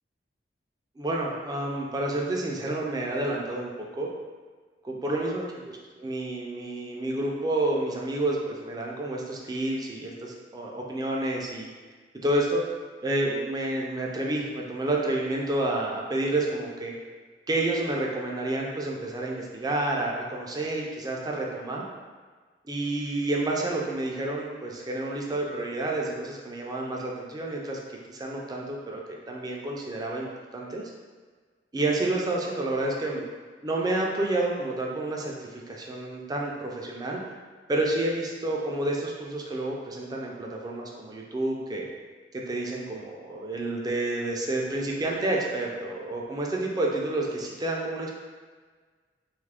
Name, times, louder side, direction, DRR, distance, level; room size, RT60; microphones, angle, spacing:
voice 1, 1.0-4.1 4.8-5.7 6.0-11.7 12.2-12.6 13.0-17.0 17.5-21.9 22.7-27.8 28.1-30.9 31.7-33.2 33.6-37.2 37.7-41.9 42.3-48.1, right 2 dB, 20° right, -2 dB, 0.4 m, -29 dB
3.0 x 2.4 x 3.4 m, 1.5 s
head